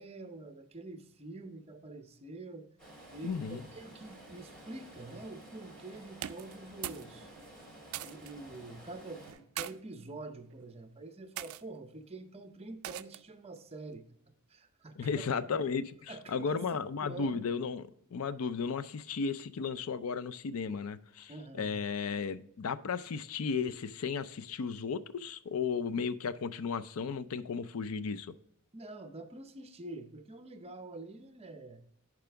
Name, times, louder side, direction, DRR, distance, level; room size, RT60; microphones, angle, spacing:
voice 1, 0.0-2.7 3.1-7.3 8.0-14.0 14.5-15.2 16.1-17.4 21.3-21.8 28.7-31.8, right 2 dB, 25° right, 8 dB, 0.7 m, -46 dB
Stream, 2.8-9.3, right 1 dB, 5° left, 3.0 m, -52 dB
voice 2, 3.2-3.6 15.0-28.3, left 5 dB, 70° left, 13 dB, 0.4 m, -35 dB
sound 1, 6.1-7.1 7.4-8.3 9.2-9.7 10.5-10.8 11.4-11.6 12.8-13.3, right 12 dB, 65° right, 0.3 m, -41 dB
10.5 x 4.9 x 3.4 m, 0.70 s
head